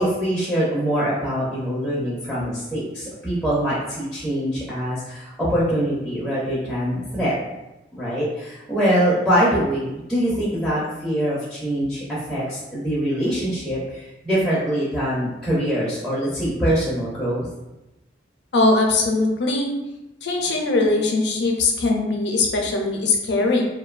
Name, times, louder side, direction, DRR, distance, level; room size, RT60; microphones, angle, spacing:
voice 1, 0.0-7.3 7.9-17.5, equal, ahead, -9 dB, 0.4 m, -23 dB
voice 2, 18.5-19.7 20.2-23.7, left 3 dB, 65° left, 1 dB, 0.4 m, -20 dB
2.6 x 2.1 x 2.3 m, 0.96 s
head